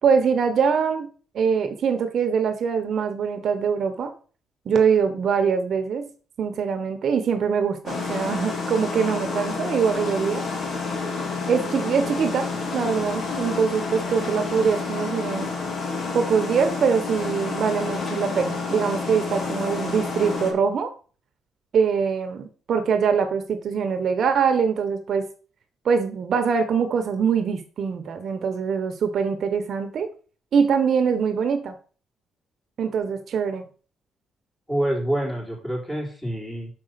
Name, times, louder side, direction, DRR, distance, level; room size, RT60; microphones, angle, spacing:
voice 1, 0.0-4.1 4.7-6.1 6.4-10.4 11.5-15.5 16.1-20.9 21.7-25.3 25.8-30.1 30.5-31.7 32.8-33.6, right 6 dB, 60° right, 8 dB, 1.0 m, -23 dB
sound 1, 7.9-20.5, left 4 dB, 50° left, 2.2 m, -29 dB
voice 2, 34.7-36.7, right 1 dB, 15° left, -4 dB, 3.7 m, -27 dB
6.1 x 5.0 x 5.8 m, 0.38 s
cardioid pair, 90°, 0 cm